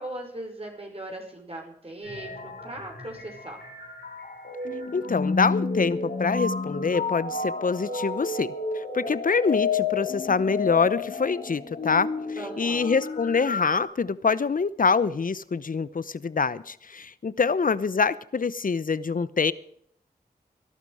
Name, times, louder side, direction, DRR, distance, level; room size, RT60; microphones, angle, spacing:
voice 1, 0.0-3.6 12.4-12.9, right 1 dB, 35° right, 1 dB, 5.6 m, -39 dB
sound 1, 2.0-13.8, left 4 dB, 85° left, 3.9 m, -31 dB
voice 2, 4.9-12.1 12.6-19.5, left 5 dB, 55° left, 17 dB, 0.8 m, -25 dB
19.0 x 12.0 x 4.9 m, 0.67 s
cardioid pair, 50°, 16 cm